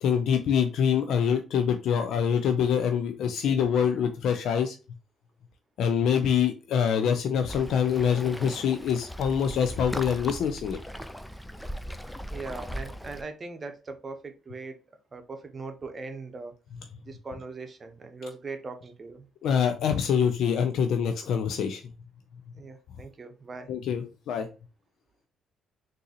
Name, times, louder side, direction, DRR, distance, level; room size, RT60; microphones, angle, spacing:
voice 1, 0.0-4.8 5.8-10.8 19.4-21.8 23.7-24.5, left 7 dB, 70° left, 0.4 m, -25 dB
Waves surf, 7.5-13.2, equal, 5° left, 0.4 m, -38 dB
voice 2, 12.3-14.8 15.1-16.5 17.0-19.3 22.5-23.7, right 3 dB, 40° right, 0.8 m, -40 dB
3.8 x 2.7 x 2.7 m
supercardioid pair, 65°, 0 cm